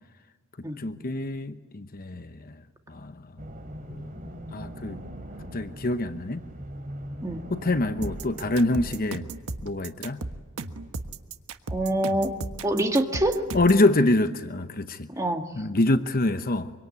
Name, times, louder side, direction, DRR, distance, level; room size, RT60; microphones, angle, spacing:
voice 1, 0.8-2.6 2.9-3.2 3.9-4.0 4.5-5.0 5.5-6.4 7.5-9.2 9.6-10.2 13.5-15.1 15.5-16.7, left 2 dB, 40° left, 10 dB, 0.9 m, -25 dB
sound 1, 3.4-9.0, equal, 40° right, 3.1 m, -40 dB
sound 2, 8.0-13.9, right 2 dB, 80° right, 1.4 m, -35 dB
voice 2, 11.7-12.3 12.6-13.4 15.2-15.5, right 1 dB, 15° right, 4 dB, 1.9 m, -25 dB
25.5 x 24.5 x 9.4 m, 1.3 s
head